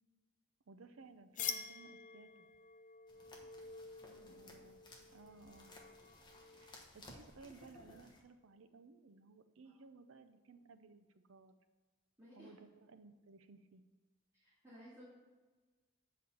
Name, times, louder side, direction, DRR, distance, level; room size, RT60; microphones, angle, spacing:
voice 1, 0.7-2.5 4.2-4.8 5.1-5.7 6.5-11.6 12.3-13.8, right 4 dB, 75° right, 10 dB, 0.6 m, -59 dB
sound 1, 1.4-6.9, left 7 dB, 40° left, 0.6 m, -48 dB
sound 2, 3.1-8.2, left 2 dB, 20° left, 1.1 m, -59 dB
voice 2, 4.0-4.5 9.6-9.8 12.2-12.5 14.3-15.0, equal, 15° right, -11 dB, 2.3 m, -59 dB
7.7 x 4.2 x 6.9 m, 1.3 s
head